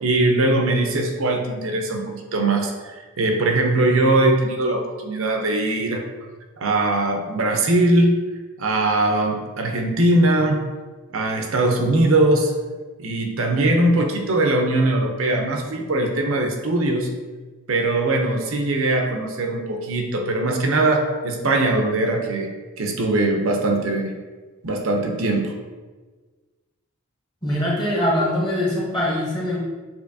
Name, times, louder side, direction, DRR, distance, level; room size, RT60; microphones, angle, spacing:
voice 1, 0.0-6.0 6.6-8.2 8.6-10.6 11.1-12.5 13.0-17.1 17.7-22.5 22.8-24.1 24.6-25.6, right 2 dB, 65° right, 3 dB, 0.6 m, -21 dB
voice 2, 27.4-29.6, left 1 dB, 20° left, -5 dB, 0.9 m, -22 dB
6.8 x 2.8 x 2.7 m, 1.3 s
head